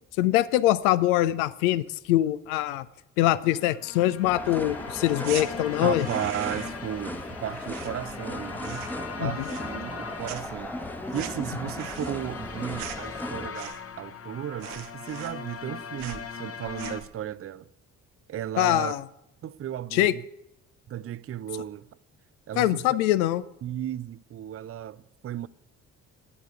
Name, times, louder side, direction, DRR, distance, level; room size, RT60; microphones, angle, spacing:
voice 1, 0.2-2.9 3.2-6.1 9.2-9.5 18.6-19.0 19.9-20.1 22.6-23.4, left 14 dB, 75° left, 0.6 m, -23 dB
sound 1, 3.5-17.0, left 6 dB, 30° left, 1.1 m, -40 dB
sound 2, 4.2-13.5, left 1 dB, 5° left, 1.0 m, -37 dB
sound 3, 5.2-5.5 5.9-6.9 7.1-8.3 8.6-9.1 9.4-10.0 10.2-14.0 14.3-14.4 14.6-15.7 16.0-16.3 16.7-17.1, right 10 dB, 75° right, 1.0 m, -41 dB
voice 2, 5.8-8.9 9.2-17.7 18.3-19.0 19.4-20.2 20.9-21.9 22.5-23.0 23.6-25.5, right 11 dB, 30° right, 0.5 m, -35 dB
9.0 x 8.3 x 8.2 m
figure-of-eight pair, 40°, 44 cm